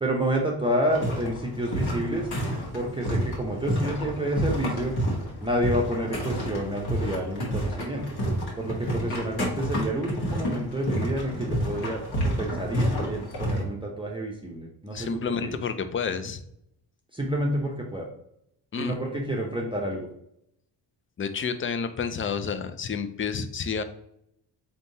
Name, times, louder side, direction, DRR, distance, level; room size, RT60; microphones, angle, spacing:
voice 1, 0.0-2.3 2.7-5.0 5.4-8.2 8.6-15.1 15.4-15.6 17.1-18.1 18.8-20.1, equal, 10° right, -1 dB, 0.7 m, -29 dB
sound 1, 0.9-13.6, equal, 55° left, 1.5 m, -30 dB
voice 2, 14.9-16.4 18.7-19.0 21.2-23.8, left 6 dB, 30° left, 9 dB, 0.4 m, -30 dB
4.4 x 3.4 x 2.7 m, 0.75 s
cardioid pair, 75°, 44 cm